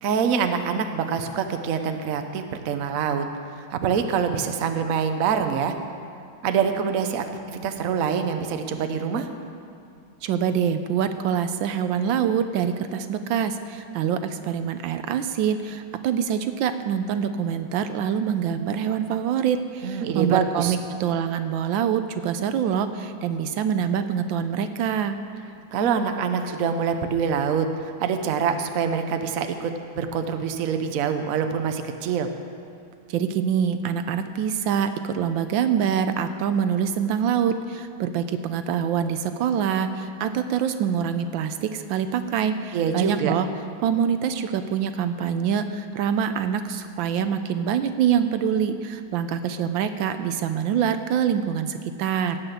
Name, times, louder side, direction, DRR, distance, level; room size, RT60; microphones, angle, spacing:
voice 1, 0.0-3.2 3.7-5.7 6.4-9.3 19.8-20.7 25.7-32.3 42.7-43.3, right 6 dB, 55° right, 7 dB, 1.0 m, -25 dB
voice 2, 10.2-25.2 33.1-43.5 43.8-52.4, right 8 dB, 75° right, 9 dB, 1.3 m, -25 dB
17.5 x 5.8 x 8.0 m, 2.4 s
omnidirectional pair, 2.2 m